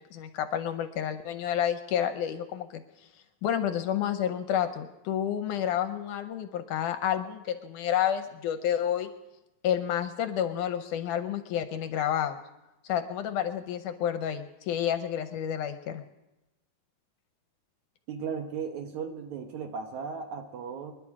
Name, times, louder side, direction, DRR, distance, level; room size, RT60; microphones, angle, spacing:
voice 1, 0.0-2.8 3.4-9.1 9.6-12.4 12.9-16.0, left 10 dB, 75° left, 9 dB, 2.1 m, -30 dB
voice 2, 18.1-20.9, right 6 dB, 65° right, 6 dB, 2.1 m, -36 dB
27.5 x 11.0 x 4.8 m, 0.97 s
omnidirectional pair, 4.0 m